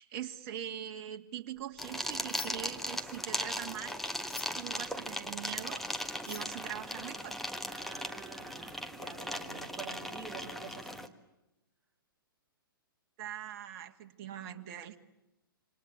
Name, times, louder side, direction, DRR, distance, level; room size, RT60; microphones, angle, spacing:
voice 1, 0.0-4.0 4.5-5.8 6.3-7.4 13.2-15.0, right 10 dB, 40° right, 4 dB, 2.2 m, -42 dB
sound 1, 1.6-2.8 3.1-7.1, left 6 dB, 80° left, 2.4 m, -49 dB
sound 2, 1.8-11.1, equal, ahead, 1.4 m, -38 dB
voice 2, 7.7-11.0, right 5 dB, 15° right, -2 dB, 7.7 m, -47 dB
27.5 x 26.0 x 8.3 m, 0.93 s
hypercardioid pair, 125°, 12 cm